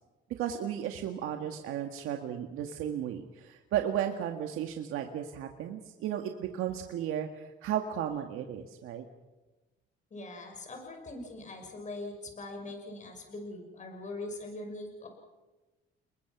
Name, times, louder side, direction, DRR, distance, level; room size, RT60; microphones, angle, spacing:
voice 1, 0.4-9.1, right 10 dB, 85° right, 4 dB, 1.8 m, -34 dB
voice 2, 10.1-15.1, left 2 dB, 35° left, 3 dB, 6.2 m, -42 dB
30.0 x 21.5 x 6.1 m, 1.1 s
cardioid pair, 115°, 21 cm